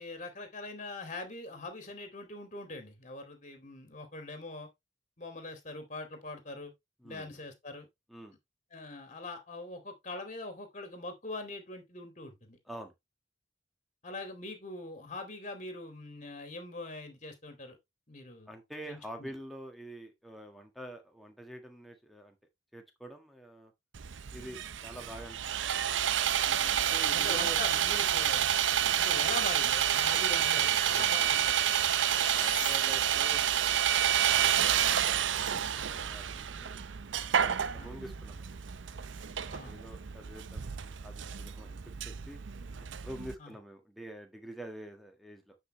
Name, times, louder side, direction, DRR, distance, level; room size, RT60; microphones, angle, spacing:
voice 1, 0.0-4.7 5.2-6.7 7.0-7.9 8.7-12.6 14.0-17.8 18.1-18.5 18.9-19.3 27.1-28.5 29.0-31.6 31.9-32.1 37.8-38.0 39.5-39.7 43.4-43.5, left 2 dB, 40° left, 2.3 m, -42 dB
voice 2, 7.0-7.4 8.1-8.4 12.6-12.9 18.5-22.4 22.7-23.7 24.3-26.3 26.7-27.8 28.8-29.0 30.9-31.2 31.8-36.8 37.3-38.6 39.3-41.8 42.0-42.4 42.8-45.6, equal, ahead, 1.6 m, -47 dB
Sawing, 23.9-43.3, right 9 dB, 85° right, 0.6 m, -29 dB
sound 1, 26.5-32.8, left 8 dB, 80° left, 0.7 m, -46 dB
9.6 x 5.3 x 3.2 m
head